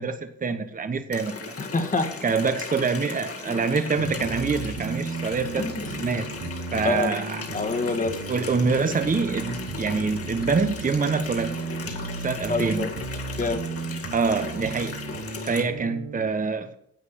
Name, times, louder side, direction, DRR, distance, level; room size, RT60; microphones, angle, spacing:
voice 1, 0.0-1.5 2.2-6.3 6.7-7.4 8.3-11.5 12.2-12.9 14.1-14.9 15.4-16.7, right 4 dB, 25° right, 8 dB, 1.1 m, -26 dB
Water tap faucet, 1.1-15.6, left 5 dB, 50° left, 2.2 m, -37 dB
voice 2, 1.6-2.1 5.6-5.8 6.8-7.1 7.5-8.1 12.5-12.9 13.4-13.6, left 2 dB, 25° left, 6 dB, 1.9 m, -26 dB
sound 1, 4.0-16.2, right 4 dB, 80° right, 2.7 m, -35 dB
10.5 x 8.2 x 6.7 m, 0.70 s
cardioid pair, 90°, 30 cm